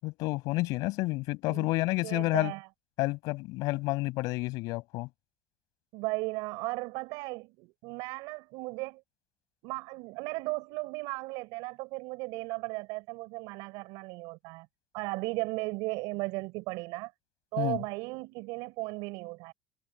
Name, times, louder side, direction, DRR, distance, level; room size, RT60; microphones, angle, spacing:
voice 1, 0.0-2.5 3.0-5.1 17.6-17.8, left 22 dB, 70° left, 6.7 m, -30 dB
voice 2, 2.0-2.7 5.9-9.0 9.6-14.7 14.9-17.1 17.5-19.5, right 25 dB, 75° right, 7.1 m, -36 dB
cardioid pair, 145°, 7 cm